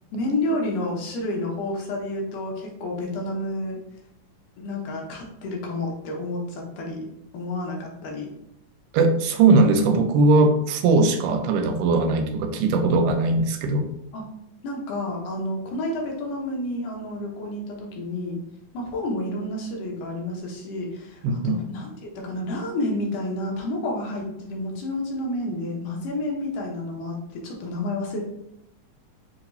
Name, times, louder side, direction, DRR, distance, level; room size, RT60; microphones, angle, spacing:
voice 1, 0.1-3.8 4.6-7.1 7.3-8.3 14.1-14.3 14.6-18.4 18.7-28.2, left 1 dB, 80° left, -1 dB, 2.5 m, -30 dB
voice 2, 8.9-13.9 21.2-21.6, right 3 dB, 85° right, 6 dB, 2.1 m, -20 dB
6.6 x 2.8 x 2.7 m, 0.81 s
omnidirectional pair, 3.7 m